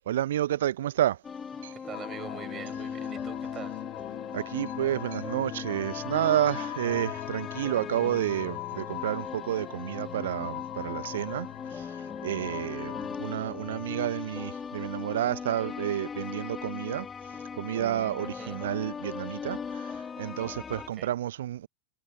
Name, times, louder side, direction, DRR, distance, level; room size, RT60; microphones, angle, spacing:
voice 1, 0.1-1.2 1.6-1.7 4.3-17.1 17.6-21.7, right 12 dB, 60° right, 1.0 m, -30 dB
sound 1, 1.2-20.9, left 6 dB, 20° left, 2.3 m, -39 dB
voice 2, 1.7-3.8 18.2-18.6 20.7-21.1, right 9 dB, 25° right, 7.7 m, -44 dB
sound 2, 1.9-13.2, left 40 dB or more, 45° left, 5.8 m, -41 dB
figure-of-eight pair, 90°, 0 cm